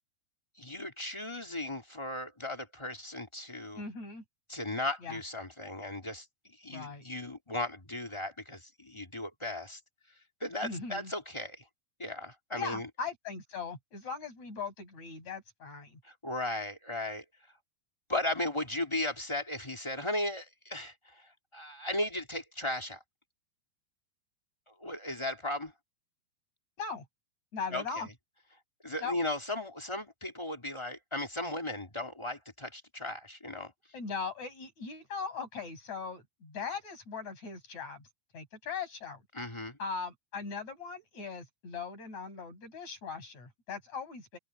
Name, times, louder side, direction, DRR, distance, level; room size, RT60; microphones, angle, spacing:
voice 1, 0.6-3.8 4.5-9.8 10.4-11.6 12.0-12.9 16.0-17.2 18.1-23.0 24.7-25.7 27.7-28.0 28.8-33.7 39.3-39.8, left 1 dB, 10° left, 1.4 m, -36 dB
voice 2, 3.8-4.2 5.0-5.2 6.7-7.0 10.6-11.1 12.6-16.0 26.8-27.1 27.5-28.1 29.0-29.2 33.9-38.1 38.3-39.2 39.8-44.4, left 5 dB, 40° left, 8.2 m, -39 dB
open air
omnidirectional pair, 4.7 m